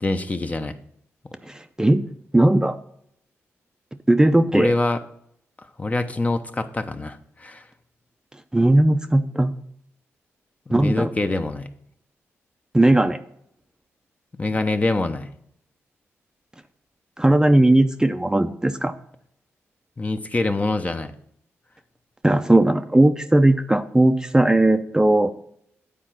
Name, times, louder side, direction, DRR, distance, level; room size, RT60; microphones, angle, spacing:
voice 1, 0.0-0.8 4.5-5.0 5.8-7.6 10.7-11.7 14.3-15.3 20.0-21.1, left 2 dB, 25° left, 8 dB, 0.8 m, -25 dB
voice 2, 1.5-2.0 2.3-2.8 4.1-4.7 8.5-9.5 10.7-11.1 12.7-13.2 17.2-18.9 22.2-25.3, right 1 dB, 15° right, 8 dB, 0.6 m, -17 dB
8.5 x 4.6 x 6.0 m, 0.70 s
cardioid pair, 60°, 5 cm